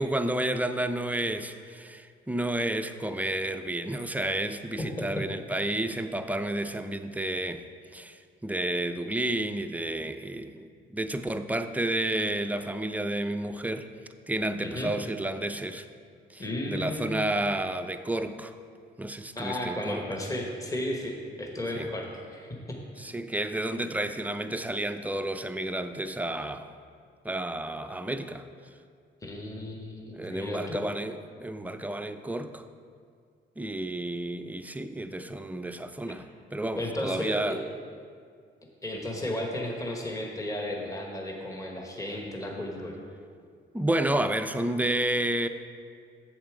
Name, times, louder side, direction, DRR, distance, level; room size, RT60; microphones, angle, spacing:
voice 1, 0.0-7.6 7.9-13.9 14.3-15.9 16.3-18.5 19.0-20.0 21.8-21.9 23.0-26.7 27.2-28.4 30.1-32.6 33.6-37.6 43.7-45.5, right 1 dB, 10° right, 9 dB, 0.4 m, -31 dB
voice 2, 4.8-5.2 14.6-14.9 16.4-17.3 19.3-22.1 22.3-22.8 29.2-30.8 36.8-37.6 38.8-42.9, left 1 dB, 15° left, 0 dB, 1.1 m, -34 dB
7.3 x 7.3 x 4.8 m, 2.2 s
cardioid pair, 90°, 20 cm